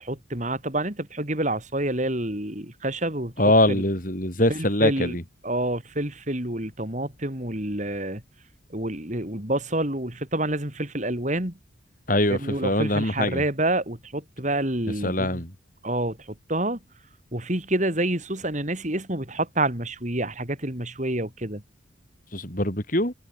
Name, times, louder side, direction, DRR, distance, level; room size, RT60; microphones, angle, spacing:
voice 1, 0.0-3.3 3.7-3.8 4.5-5.1 5.4-8.2 8.7-11.6 12.3-15.4 15.8-16.8 17.3-21.6, right 1 dB, 35° right, 3.4 m, -28 dB
voice 2, 3.4-5.2 12.1-13.4 15.0-15.5 22.3-23.1, left 1 dB, 40° left, 7.5 m, -23 dB
head